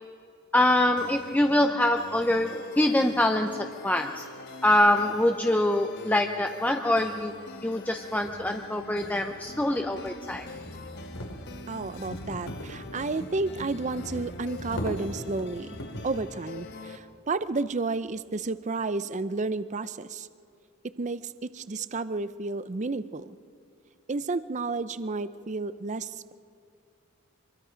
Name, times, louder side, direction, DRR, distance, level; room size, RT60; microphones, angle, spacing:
voice 1, 0.5-3.5 3.8-4.2 4.6-7.3 7.6-10.4, left 1 dB, 10° left, 4 dB, 0.6 m, -24 dB
sound 1, 1.0-17.0, left 2 dB, 55° left, 1.3 m, -44 dB
sound 2, 8.2-16.2, equal, 85° left, 2.7 m, -40 dB
voice 2, 11.7-15.8 16.0-20.3 21.0-23.3 24.1-26.3, right 3 dB, 35° right, 14 dB, 0.5 m, -31 dB
24.5 x 22.0 x 5.1 m, 2.4 s
head